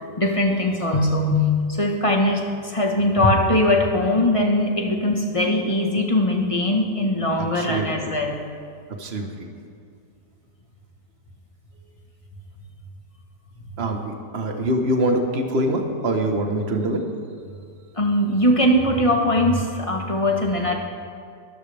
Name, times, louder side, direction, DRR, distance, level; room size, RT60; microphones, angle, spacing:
voice 1, 0.0-1.4 1.7-8.4 18.0-20.8, left 1 dB, 20° left, 1 dB, 1.3 m, -21 dB
voice 2, 7.4-8.0 8.9-9.5 13.8-17.0, right 1 dB, 35° right, 3 dB, 1.5 m, -24 dB
22.5 x 16.0 x 3.5 m, 2.3 s
omnidirectional pair, 1.9 m